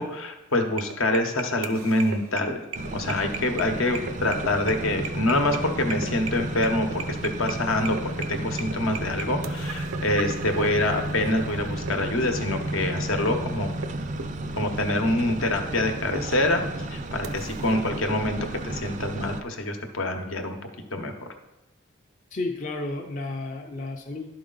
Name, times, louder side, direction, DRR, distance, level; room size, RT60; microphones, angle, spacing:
voice 1, 0.0-2.6 2.9-13.7 14.5-16.6 16.9-18.4 18.6-20.6 20.9-21.1, left 1 dB, 70° left, 5 dB, 0.9 m, -26 dB
sound 1, 0.7-18.1, right 4 dB, 85° right, 0.6 m, -39 dB
sound 2, 2.7-19.4, right 1 dB, 35° right, 0.4 m, -33 dB
voice 2, 22.3-24.3, left 2 dB, 35° left, 1 dB, 0.5 m, -32 dB
11.0 x 4.7 x 3.9 m, 0.96 s
head